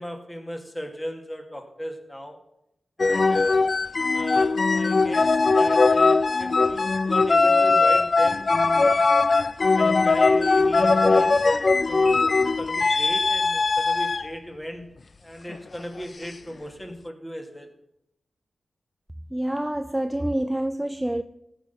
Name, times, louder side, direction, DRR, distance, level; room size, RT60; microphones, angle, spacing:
voice 1, 0.0-2.4 3.0-3.6 4.1-9.1 9.7-11.5 11.9-14.9 15.2-17.7, equal, 15° left, 2.0 m, -37 dB
sound 1, 3.0-14.3 15.5-15.8, left 3 dB, 50° left, 0.4 m, -20 dB
voice 2, 19.3-21.2, right 1 dB, 10° right, 0.5 m, -27 dB
15.0 x 6.0 x 6.8 m
wide cardioid pair, 75°, 0 cm